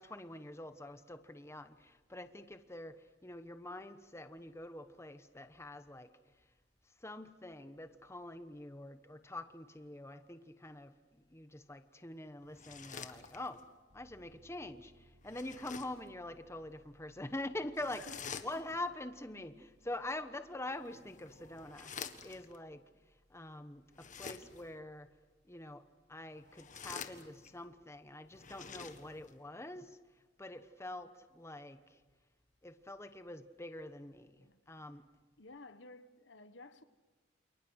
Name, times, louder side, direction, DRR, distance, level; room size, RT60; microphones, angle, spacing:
voice 1, 0.0-6.1 7.0-13.6 13.9-18.0 18.4-22.9 23.3-25.1 25.5-25.8 26.1-30.0 30.4-32.0 32.6-35.0, left 1 dB, 15° left, 1.1 m, -45 dB
sound 1, 12.5-13.7 15.2-16.1 17.7-18.9 20.7-22.6 23.9-24.8 26.4-27.6 28.3-29.4, left 6 dB, 45° left, 1.6 m, -48 dB
Piano, 13.9-30.6, right 1 dB, 85° right, 4.4 m, -70 dB
voice 2, 17.9-18.5 30.9-31.0 34.4-34.6 35.4-36.8, left 3 dB, 70° left, 1.3 m, -54 dB
29.0 x 28.5 x 6.5 m
head